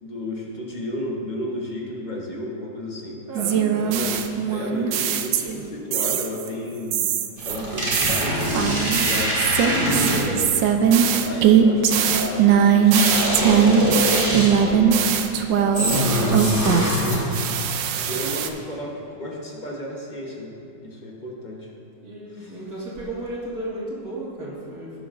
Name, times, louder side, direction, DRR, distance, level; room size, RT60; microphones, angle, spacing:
voice 1, 0.0-3.2 3.8-4.2 4.5-7.0 7.4-8.5 9.0-10.6 10.9-15.2 15.6-17.4 18.0-20.5 20.8-21.7 22.4-22.5, left 1 dB, 35° left, -2 dB, 0.8 m, -33 dB
voice 2, 3.3-3.8 4.1-4.2 22.0-24.9, right 1 dB, 45° right, -6 dB, 2.2 m, -34 dB
sound 1, 3.3-5.6 5.9-6.5 6.9-17.0 17.3-18.5, right 7 dB, 75° right, 1.2 m, -20 dB
sound 2, 7.4-10.5 12.9-14.8 15.7-17.5, equal, 25° right, 1.8 m, -24 dB
16.5 x 6.8 x 2.5 m, 2.5 s
omnidirectional pair, 2.2 m